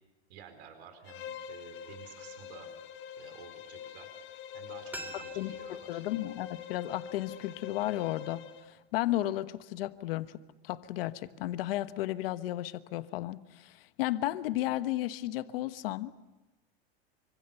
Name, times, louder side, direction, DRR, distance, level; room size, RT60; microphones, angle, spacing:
voice 1, 0.3-2.7 3.2-4.1 4.5-6.0, right 8 dB, 75° right, 7 dB, 4.4 m, -52 dB
Bowed string instrument, 1.0-8.7, left 8 dB, 35° left, 1.4 m, -45 dB
sound 1, 4.9-7.7 8.0-8.1, right 2 dB, 5° right, 2.0 m, -48 dB
voice 2, 5.1-5.6 5.9-10.4 10.6-16.1, left 15 dB, 60° left, 12 dB, 1.2 m, -34 dB
26.5 x 25.0 x 7.0 m, 1.1 s
supercardioid pair, 170°, 32 cm